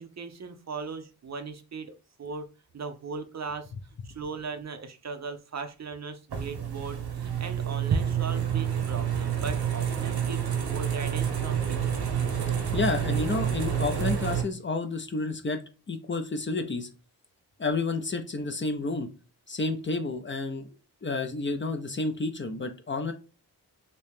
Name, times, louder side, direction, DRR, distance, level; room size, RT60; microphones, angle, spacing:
voice 1, 0.0-2.5 2.7-3.7 4.0-12.1, right 4 dB, 45° right, 8 dB, 0.5 m, -38 dB
sound 1, 6.3-14.4, right 8 dB, 80° right, 0.8 m, -28 dB
voice 2, 12.7-15.6 15.9-16.9 17.6-19.1 19.5-20.7 21.0-23.1, left 3 dB, 30° left, 6 dB, 0.5 m, -30 dB
3.0 x 2.7 x 3.4 m, 0.33 s
cardioid pair, 75°, 38 cm